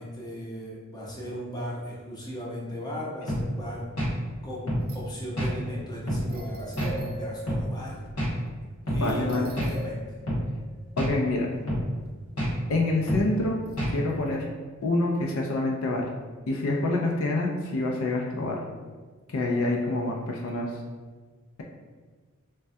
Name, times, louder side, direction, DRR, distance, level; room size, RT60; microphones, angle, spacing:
voice 1, 0.0-3.9 4.4-8.0 8.9-10.0, equal, 20° left, -6 dB, 0.6 m, -37 dB
sound 1, 3.3-3.5 4.0-4.2 4.7-4.9 5.4-5.5 6.1-6.3 6.8-6.9 7.5-7.7 8.2-8.4 8.9-9.0 9.6-9.7 10.3-10.4 11.0-11.2 11.7-11.9 12.4-12.5 13.1-13.3 13.8-14.0, equal, 90° left, 1.4 m, -27 dB
sound 2, 4.8-5.2 5.9-6.0 6.3-8.2 8.5-8.6 9.0-11.6 12.0-12.1 13.4-14.3, equal, 45° right, 0.4 m, -41 dB
voice 2, 9.0-9.5 11.0-11.5 12.7-13.6 13.9-14.5 14.8-16.1 16.5-18.6 19.3-20.7, left 2 dB, 70° left, 0 dB, 0.4 m, -26 dB
3.3 x 2.2 x 2.6 m, 1.4 s
head